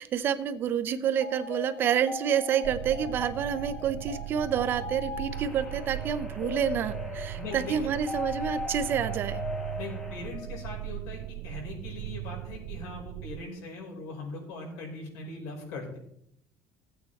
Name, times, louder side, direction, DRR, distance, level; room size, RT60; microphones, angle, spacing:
voice 1, 0.0-9.4, right 8 dB, 40° right, 11 dB, 0.6 m, -28 dB
sound 1, 1.2-10.9, left 4 dB, 25° left, 0.7 m, -40 dB
sound 2, 2.6-13.5, right 17 dB, 85° right, 0.3 m, -38 dB
sound 3, 5.3-10.3, right 1 dB, 5° left, 1.7 m, -49 dB
voice 2, 7.4-7.7 9.8-16.0, left 3 dB, 80° left, 0 dB, 5.1 m, -40 dB
15.5 x 8.6 x 4.1 m, 0.72 s
cardioid pair, 175°, 6 cm